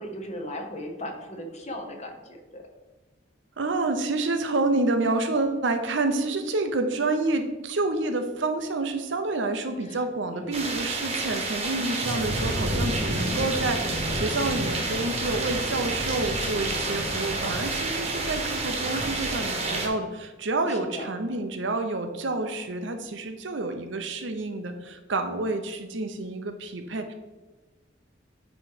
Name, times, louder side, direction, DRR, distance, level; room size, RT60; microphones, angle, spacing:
voice 1, 0.0-2.7 9.9-10.0 10.3-10.7 20.7-21.1, equal, 35° left, 3 dB, 1.0 m, -37 dB
voice 2, 3.6-27.1, right 2 dB, 70° right, 6 dB, 0.7 m, -28 dB
sound 1, 10.5-19.9, right 2 dB, 35° right, 1.1 m, -29 dB
9.0 x 3.2 x 4.8 m, 1.2 s
head